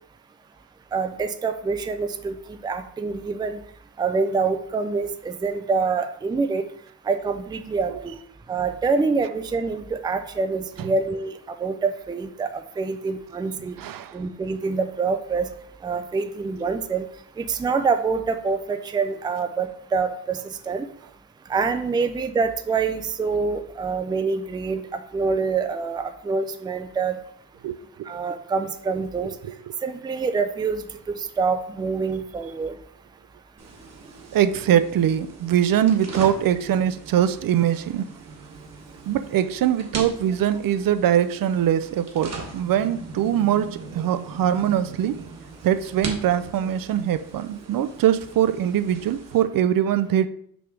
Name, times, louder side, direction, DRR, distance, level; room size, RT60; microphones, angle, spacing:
voice 1, 0.9-2.4 2.6-3.6 4.0-6.6 7.1-8.1 8.5-11.3 11.6-13.8 14.1-15.5 15.8-17.1 17.4-20.9 21.5-27.2 28.1-29.3 29.8-30.8 31.2-32.7, right 4 dB, 15° right, 8 dB, 0.3 m, -26 dB
voice 2, 13.8-14.2 27.6-28.1 29.2-29.8 34.3-38.1 39.1-45.2 45.6-50.3, right 10 dB, 70° right, 13 dB, 0.5 m, -22 dB
sound 1, 33.6-49.4, right 4 dB, 45° right, 1.2 m, -40 dB
6.0 x 3.4 x 6.0 m, 0.68 s
wide cardioid pair, 180°, 35 cm